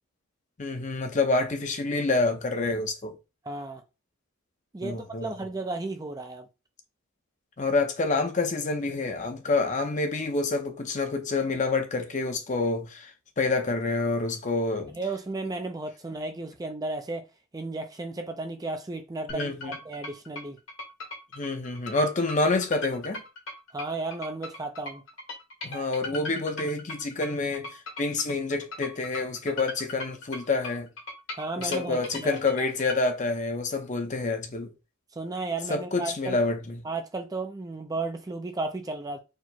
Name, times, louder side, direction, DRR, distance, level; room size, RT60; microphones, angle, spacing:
voice 1, 0.6-3.2 4.8-5.3 7.6-14.9 19.3-19.7 21.3-23.2 25.6-30.9 31.6-34.7 35.7-36.8, left 3 dB, 35° left, 0.6 m, -28 dB
voice 2, 3.4-3.8 4.7-6.5 14.9-17.3 17.5-20.6 23.7-25.0 31.3-32.4 35.1-36.4 36.8-39.2, right 3 dB, 15° right, 0.4 m, -34 dB
sound 1, 19.3-33.0, left 2 dB, 65° left, 1.4 m, -39 dB
4.5 x 2.1 x 4.2 m
head